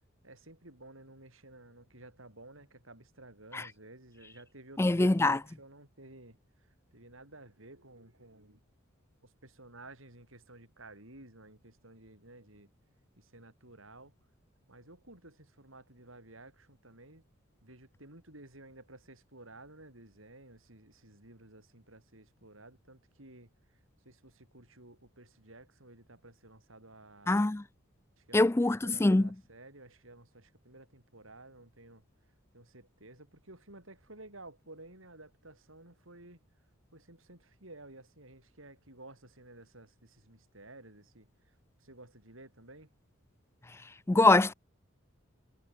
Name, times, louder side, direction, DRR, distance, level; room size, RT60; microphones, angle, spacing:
voice 1, 0.2-8.6 9.2-12.7 13.2-14.1 14.7-17.2 17.6-27.6 28.2-32.0 32.5-36.4 36.9-42.9, right 2 dB, 75° right, 7.9 m, -54 dB
voice 2, 4.8-5.4 27.3-27.6 28.3-29.3 44.1-44.5, left 2 dB, 10° left, 0.4 m, -23 dB
head